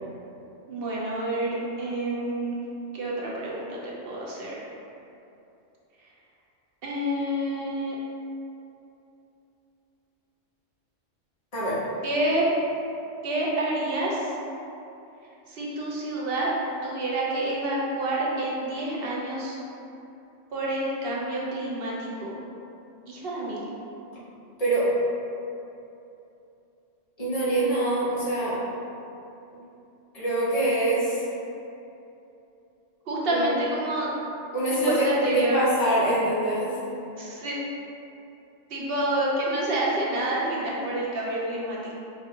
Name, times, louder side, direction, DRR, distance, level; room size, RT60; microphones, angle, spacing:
voice 1, 0.7-2.6 2.9-4.6 6.8-8.0 12.0-12.5 13.2-14.3 15.5-16.5 16.8-19.6 20.5-22.3 23.1-23.6 33.1-34.1 34.9-35.6 37.2-37.6 38.7-41.9, right 1 dB, 60° right, -5 dB, 0.8 m, -28 dB
voice 2, 24.6-24.9 27.2-28.6 30.1-31.2 33.3-33.4 34.5-36.7, right 1 dB, 35° left, -10 dB, 1.1 m, -24 dB
5.0 x 2.3 x 2.7 m, 2.8 s
omnidirectional pair, 1.2 m